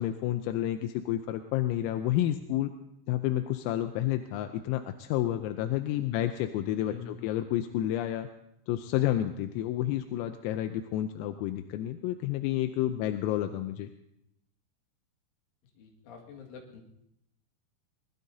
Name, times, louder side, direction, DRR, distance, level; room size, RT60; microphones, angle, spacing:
voice 1, 0.0-2.7 3.1-8.3 8.7-13.9, left 12 dB, 85° left, 7 dB, 3.4 m, -30 dB
voice 2, 6.9-7.2 15.8-16.8, left 7 dB, 70° left, 0 dB, 4.5 m, -46 dB
24.5 x 20.0 x 2.8 m, 0.79 s
omnidirectional pair, 5.9 m